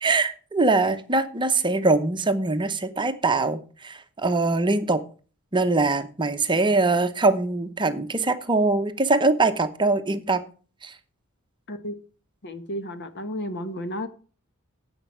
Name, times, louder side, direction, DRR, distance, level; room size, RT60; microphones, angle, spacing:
voice 1, 0.0-5.0 5.5-10.4 10.8-10.9, right 3 dB, 20° right, 0.8 m, -22 dB
voice 2, 12.4-14.1, equal, 55° left, 1.3 m, -32 dB
10.5 x 8.1 x 4.8 m
head